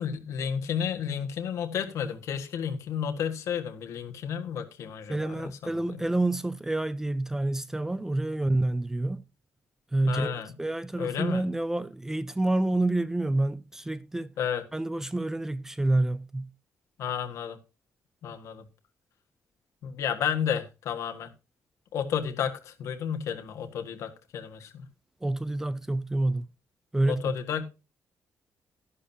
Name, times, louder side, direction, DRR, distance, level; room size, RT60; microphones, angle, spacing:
voice 1, 0.0-6.1 10.1-10.5 11.0-11.4 14.4-14.6 17.0-17.6 18.2-18.6 19.8-21.3 21.9-24.9 27.1-27.6, left 8 dB, 75° left, 1.6 m, -32 dB
voice 2, 5.1-9.2 9.9-14.3 14.7-16.5 25.2-26.5 26.9-27.3, right 2 dB, 10° right, 0.4 m, -28 dB
13.0 x 11.5 x 2.8 m
cardioid pair, 170°, 5 cm